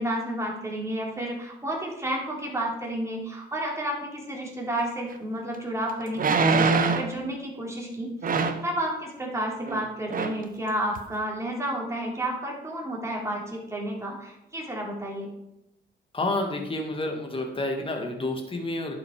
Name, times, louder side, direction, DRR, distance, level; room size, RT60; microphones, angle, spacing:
voice 1, 0.0-15.3, right 1 dB, 15° right, -2 dB, 3.9 m, -31 dB
sound 1, 5.1-5.2 6.1-7.2 8.2-8.7 9.7-9.8 10.1-10.4 11.0-11.1, right 4 dB, 45° right, 1.1 m, -23 dB
voice 2, 16.1-18.9, left 2 dB, 25° left, 3 dB, 2.3 m, -29 dB
10.5 x 7.0 x 5.0 m, 0.86 s
cardioid pair, 90°, 20 cm